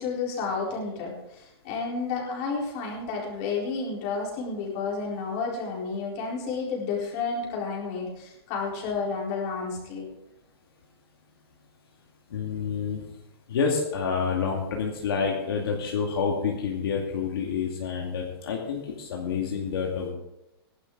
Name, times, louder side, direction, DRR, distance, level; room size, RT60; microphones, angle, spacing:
voice 1, 0.0-10.0, left 4 dB, 30° left, -3 dB, 4.2 m, -31 dB
voice 2, 12.3-13.0 13.5-20.1, left 6 dB, 65° left, -1 dB, 2.4 m, -28 dB
17.0 x 11.5 x 3.9 m, 0.91 s
hypercardioid pair, 170°, 13 cm